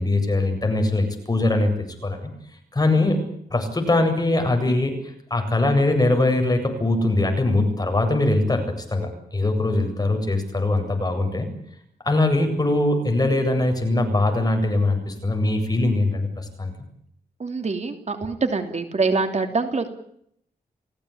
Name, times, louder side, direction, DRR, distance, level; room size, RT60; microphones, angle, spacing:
voice 1, 0.0-1.7 2.0-2.3 2.7-3.2 3.5-5.0 5.3-11.5 12.0-16.7, left 2 dB, 25° left, 5 dB, 7.9 m, -21 dB
voice 2, 17.4-19.9, right 4 dB, 45° right, 6 dB, 3.1 m, -24 dB
29.0 x 17.5 x 8.8 m, 0.71 s
wide cardioid pair, 110°, 16 cm